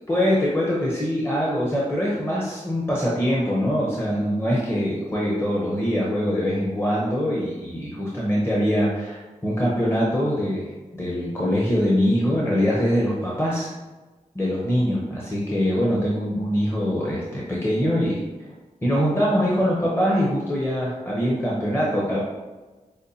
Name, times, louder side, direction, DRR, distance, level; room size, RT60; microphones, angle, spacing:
voice 1, 0.1-10.6 10.9-13.7 14.3-18.2 18.8-22.2, equal, 20° left, -5 dB, 0.6 m, -23 dB
5.1 x 2.2 x 2.7 m, 1.2 s
wide cardioid pair, 70°, 14 cm